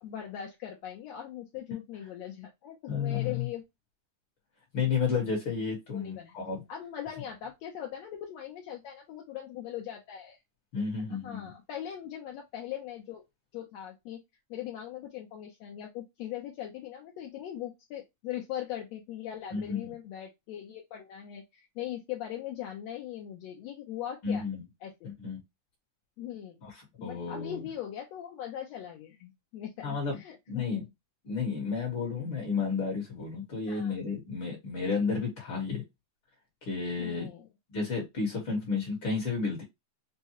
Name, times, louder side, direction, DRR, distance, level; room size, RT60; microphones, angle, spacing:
voice 1, 0.0-3.6 5.9-6.4 6.7-10.4 11.1-13.3 13.5-14.2 14.5-24.5 24.8-25.1 26.2-26.6 27.0-29.9 30.1-30.8 33.7-33.9 37.0-37.5, left 11 dB, 70° left, 1.8 m, -40 dB
voice 2, 2.9-3.5 4.7-6.6 10.7-11.4 19.5-19.9 24.2-24.6 25.2-25.4 26.6-26.7 27.0-27.6 29.8-30.2 30.5-30.8 31.3-35.8 36.6-37.3 37.7-39.6, left 5 dB, 55° left, 1.8 m, -31 dB
5.6 x 2.2 x 2.9 m
omnidirectional pair, 3.4 m